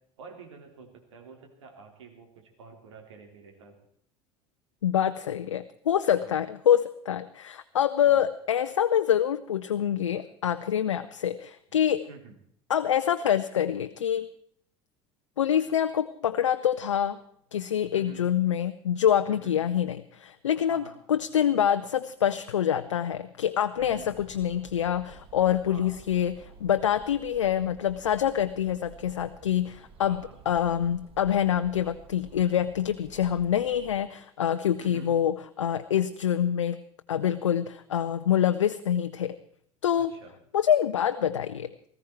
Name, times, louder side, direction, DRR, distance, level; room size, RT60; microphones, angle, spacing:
voice 1, 0.2-3.7 6.1-6.4 8.1-8.2 12.1-12.4 17.9-18.2 19.3-19.6 20.7-21.0 23.8-24.1 25.7-25.9 30.1-30.4 34.8-35.1 40.0-40.3, right 5 dB, 80° right, 3 dB, 3.5 m, -48 dB
voice 2, 4.8-12.0 12.7-14.3 15.4-17.2 17.5-30.2 30.5-36.8 37.1-39.3 39.8-40.1 40.5-41.7, left 9 dB, 85° left, 9 dB, 0.6 m, -26 dB
sound 1, 23.8-34.0, right 6 dB, 40° right, 1.8 m, -52 dB
18.5 x 15.0 x 4.6 m, 0.65 s
hypercardioid pair, 70°, 15 cm